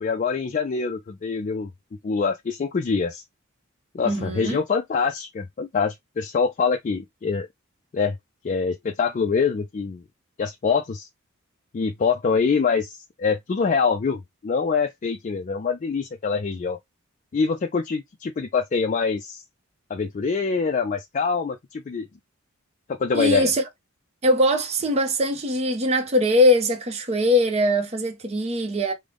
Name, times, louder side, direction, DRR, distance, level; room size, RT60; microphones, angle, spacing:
voice 1, 0.0-1.7 2.0-3.2 3.9-7.5 7.9-8.2 8.4-10.0 10.4-11.1 11.7-16.8 17.3-19.4 19.9-22.1 22.9-23.5, left 5 dB, 35° left, 0.3 m, -25 dB
voice 2, 4.0-4.6 23.1-23.6 24.2-28.9, left 1 dB, 30° right, 0.6 m, -21 dB
3.7 x 2.1 x 3.3 m
head